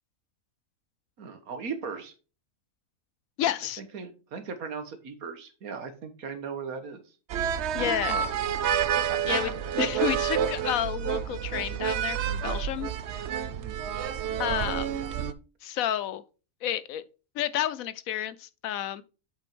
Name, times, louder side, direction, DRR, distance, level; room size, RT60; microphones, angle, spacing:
voice 1, 1.2-2.1 3.8-7.2 7.8-8.3 9.1-9.2 13.5-13.9, right 5 dB, 90° right, 1.8 m, -38 dB
voice 2, 3.4-3.8 7.7-8.1 9.3-9.5 9.8-13.3 14.4-15.0 15.6-16.2 16.6-17.0 17.3-19.0, left 11 dB, 75° left, 1.1 m, -30 dB
sound 1, 7.3-15.3, right 9 dB, 60° right, 0.8 m, -29 dB
7.9 x 5.6 x 4.5 m
omnidirectional pair, 1.5 m